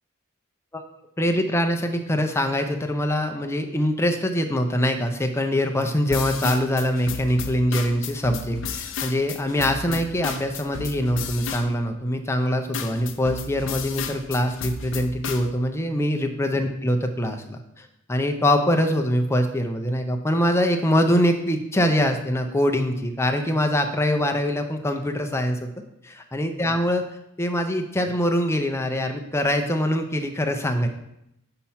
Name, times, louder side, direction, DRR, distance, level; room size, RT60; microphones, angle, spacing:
voice 1, 1.2-25.7 26.0-27.0 27.4-30.9, equal, 10° left, 5 dB, 0.5 m, -23 dB
sound 1, 6.1-12.1 12.7-15.5, left 5 dB, 60° left, 0.5 m, -33 dB
5.7 x 4.3 x 5.6 m, 0.82 s
head